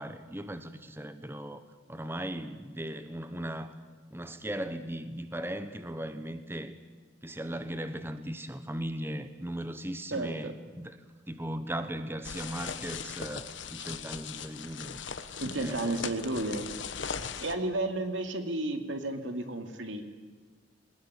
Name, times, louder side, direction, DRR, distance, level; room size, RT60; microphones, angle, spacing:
voice 1, 0.0-1.6 1.9-3.7 4.1-6.7 7.2-11.0 11.3-15.0 15.6-16.0, right 1 dB, 10° right, 10 dB, 1.0 m, -38 dB
voice 2, 10.1-10.5 15.4-16.6 17.4-20.1, right 2 dB, 80° right, 6 dB, 2.7 m, -32 dB
sound 1, 12.2-17.5, left 6 dB, 80° left, 1.4 m, -39 dB
21.0 x 20.0 x 10.0 m, 1.4 s
head